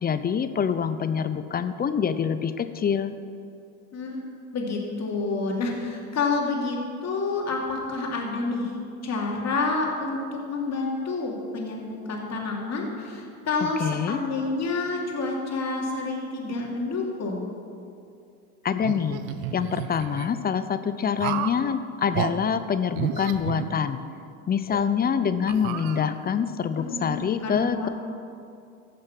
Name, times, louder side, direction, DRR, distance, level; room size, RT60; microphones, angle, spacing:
voice 1, 0.0-3.1 13.8-14.2 18.6-19.2 19.5-24.0 24.5-27.9, left 7 dB, 20° left, 11 dB, 0.6 m, -25 dB
voice 2, 3.9-4.2 4.5-8.7 9.0-17.5 25.9-26.0 26.8-27.9, left 3 dB, 40° left, -1 dB, 2.7 m, -29 dB
sound 1, 18.8-20.3 21.2-21.6 22.1-22.3 22.9-24.2 24.7-24.8 25.5-26.4, right 10 dB, 65° right, 0.9 m, -32 dB
15.5 x 6.3 x 6.1 m, 2.5 s
supercardioid pair, 95°, 43 cm